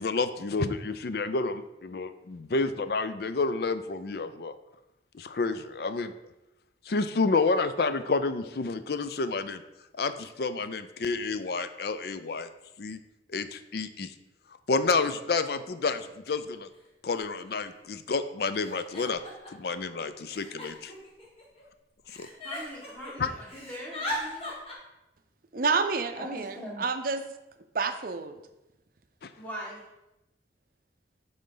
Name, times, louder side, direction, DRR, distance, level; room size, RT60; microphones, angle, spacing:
voice 1, 0.0-4.5 5.1-6.1 6.9-9.6 10.0-12.5 12.8-13.0 13.3-14.1 14.7-16.7 17.0-19.2 19.5-20.9 22.2-22.3 23.2-23.3 29.2-29.3, left 3 dB, 55° left, 0.4 m, -29 dB
Giggle, 17.1-17.2 17.4-17.9 18.6-19.7 20.3-21.6 22.1-23.1 23.4-24.7, left 1 dB, 30° left, 1.5 m, -38 dB
voice 2, 22.4-24.5 26.2-26.8 29.4-29.8, equal, 5° left, 1.6 m, -41 dB
voice 3, 25.5-27.2 27.7-28.4, right 4 dB, 50° right, 0.5 m, -29 dB
10.0 x 3.9 x 3.8 m
head